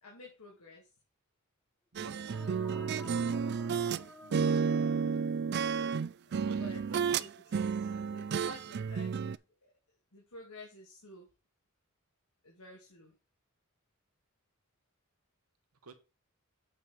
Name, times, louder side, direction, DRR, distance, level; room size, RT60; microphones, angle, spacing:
voice 1, 0.0-0.9 2.3-3.2 6.3-9.1 10.1-11.3 12.4-13.1, left 2 dB, 80° left, -2 dB, 2.4 m, -52 dB
voice 2, 1.9-2.3 4.2-4.6 6.5-7.0 15.8-15.9, right 4 dB, 85° right, 8 dB, 1.3 m, -50 dB
sound 1, 2.0-5.8, equal, 10° left, 1.5 m, -52 dB
sound 2, 2.0-4.0 4.3-7.3 7.5-9.4, right 6 dB, 50° right, 0.3 m, -31 dB
8.5 x 4.7 x 5.2 m, 0.29 s
head